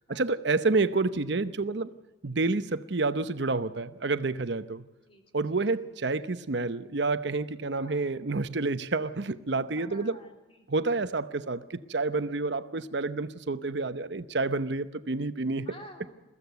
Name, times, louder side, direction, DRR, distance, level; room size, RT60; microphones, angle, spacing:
voice 1, 0.1-1.9 2.2-4.8 5.3-10.2 10.7-15.7, right 3 dB, 60° right, 0.8 m, -29 dB
voice 2, 5.1-5.6 7.8-8.1 9.6-10.7 12.4-12.9 15.7-16.2, left 1 dB, 30° left, 3.5 m, -51 dB
22.5 x 15.0 x 9.3 m
head